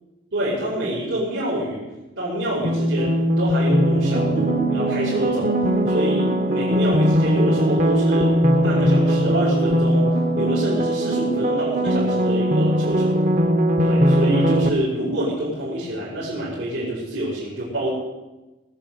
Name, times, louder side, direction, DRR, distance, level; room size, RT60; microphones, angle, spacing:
voice 1, 0.3-1.9 2.2-5.5 5.9-10.1 10.4-13.2 13.8-17.9, right 1 dB, 80° right, -8 dB, 5.4 m, -27 dB
sound 1, 2.6-14.7, equal, 40° right, 0.9 m, -20 dB
20.0 x 7.8 x 8.5 m, 1.1 s
head